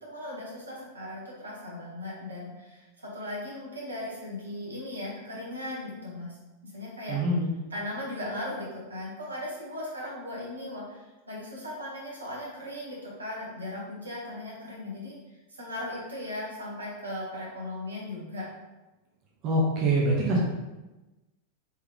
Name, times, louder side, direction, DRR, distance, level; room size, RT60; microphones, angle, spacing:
voice 1, 0.0-6.3 6.6-7.2 7.7-15.2 15.5-18.5, left 1 dB, 75° right, -5 dB, 1.2 m, -37 dB
voice 2, 7.1-7.5 19.4-20.4, right 1 dB, 35° right, -4 dB, 0.8 m, -24 dB
3.5 x 3.3 x 3.0 m, 1.1 s
figure-of-eight pair, 90°, 0 cm